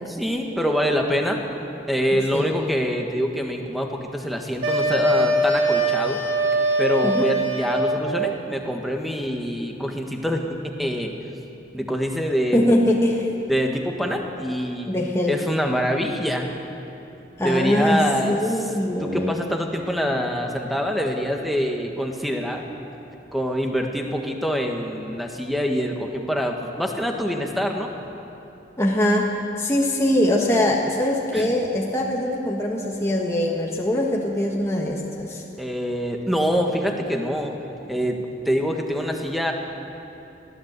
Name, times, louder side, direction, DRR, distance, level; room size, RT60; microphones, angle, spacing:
voice 1, 0.1-1.4 1.9-6.2 6.8-11.1 11.7-12.6 13.5-14.9 15.3-16.6 17.4-18.4 19.0-22.6 23.3-27.9 31.3-31.5 35.6-37.5 37.9-38.2 38.4-39.5, equal, ahead, 2 dB, 1.7 m, -25 dB
voice 2, 2.1-2.8 7.0-7.3 12.5-13.3 14.9-15.4 17.4-19.4 28.8-29.3 29.6-35.4, left 1 dB, 15° left, -2 dB, 1.5 m, -22 dB
sound 1, 4.6-8.1, right 1 dB, 75° right, 3.7 m, -22 dB
21.5 x 15.0 x 8.3 m, 2.9 s
head